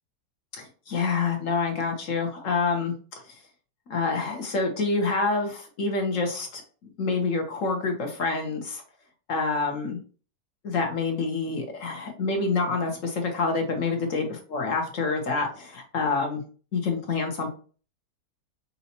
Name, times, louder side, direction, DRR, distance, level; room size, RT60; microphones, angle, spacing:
voice 1, 0.5-3.4 3.9-8.8 9.3-10.0 10.6-16.4 16.7-17.5, left 4 dB, 55° left, 3 dB, 1.2 m, -27 dB
5.4 x 2.8 x 2.8 m, 0.39 s
omnidirectional pair, 1.7 m